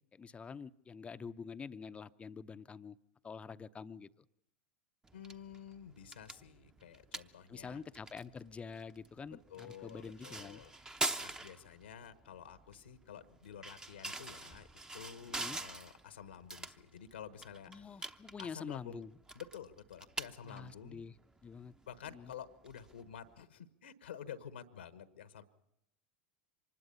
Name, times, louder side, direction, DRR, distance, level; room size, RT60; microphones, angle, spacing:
voice 1, 0.0-3.0 3.2-4.2 7.5-10.6 15.2-15.6 17.7-19.1 20.4-21.2 21.4-21.7 22.1-22.3, left 5 dB, 20° left, 13 dB, 0.7 m, -47 dB
sound 1, 5.0-23.4, right 2 dB, 10° right, 0.9 m, -46 dB
voice 2, 5.1-7.8 9.5-10.7 11.2-14.7 14.9-18.1 18.4-19.0 19.3-21.1 21.9-25.4, left 8 dB, 80° left, 12 dB, 1.2 m, -50 dB
25.0 x 20.0 x 5.6 m, 0.79 s
figure-of-eight pair, 85°, 6 cm